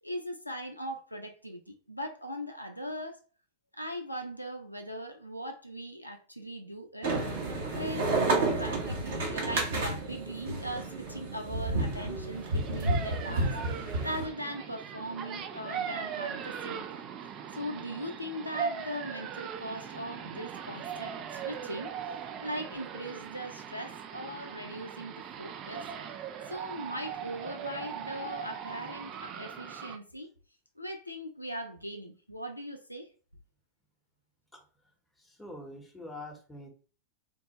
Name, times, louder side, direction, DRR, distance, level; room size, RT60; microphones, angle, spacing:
voice 1, 0.0-3.2 3.8-7.1 7.7-17.1 17.5-21.9 22.4-25.9 26.5-30.3 30.8-33.1, equal, 85° left, 5 dB, 0.4 m, -40 dB
sound 1, 7.0-14.3, right 2 dB, 60° right, 0.9 m, -31 dB
sound 2, 12.3-30.0, right 7 dB, 35° right, 0.3 m, -40 dB
voice 2, 35.2-36.7, left 1 dB, 5° left, 0 dB, 0.8 m, -44 dB
3.4 x 2.1 x 2.8 m, 0.38 s
figure-of-eight pair, 90°, 0 cm